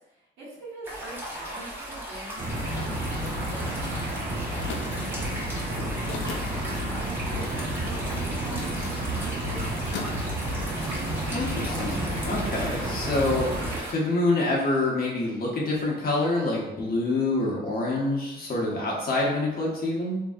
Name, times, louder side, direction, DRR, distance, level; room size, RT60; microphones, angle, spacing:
voice 1, 0.0-5.1 5.3-8.9 9.2-10.0, right 1 dB, 90° right, -11 dB, 1.2 m, -43 dB
sound 1, 0.8-13.9, right 1 dB, 10° right, 1.0 m, -36 dB
sound 2, 2.4-13.8, right 1 dB, 50° right, 1.0 m, -31 dB
sound 3, 3.0-14.0, left 5 dB, 70° left, 0.5 m, -45 dB
voice 2, 11.3-13.5 13.9-20.2, left 2 dB, 50° left, -4 dB, 0.9 m, -26 dB
2.9 x 2.7 x 2.4 m, 0.95 s
cardioid pair, 90°, 20 cm